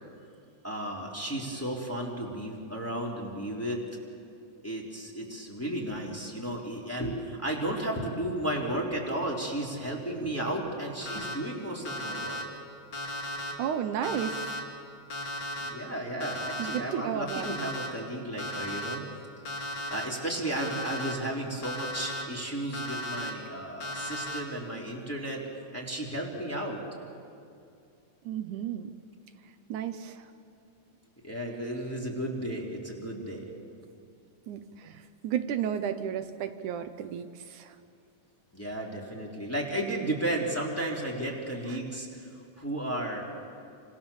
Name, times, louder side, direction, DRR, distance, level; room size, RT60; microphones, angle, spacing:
voice 1, 0.6-3.8 4.6-12.4 15.7-19.0 19.9-25.4 25.7-26.8 31.2-33.5 38.5-43.4, right 1 dB, 5° left, -3 dB, 3.5 m, -34 dB
Alarm, 11.0-11.3 11.8-12.4 12.9-13.5 14.0-14.6 15.1-15.7 16.2-16.8 17.3-17.9 18.4-18.9 19.4-20.0 20.5-21.1 21.6-22.2 22.7-23.3 23.8-24.4, left 1 dB, 35° left, 3.2 m, -35 dB
voice 2, 13.6-14.7 16.6-17.5 28.3-28.9 29.7-30.3 34.5-37.8 41.7-41.8, right 9 dB, 80° right, 8 dB, 2.3 m, -33 dB
29.0 x 27.0 x 7.3 m, 2.5 s
omnidirectional pair, 3.5 m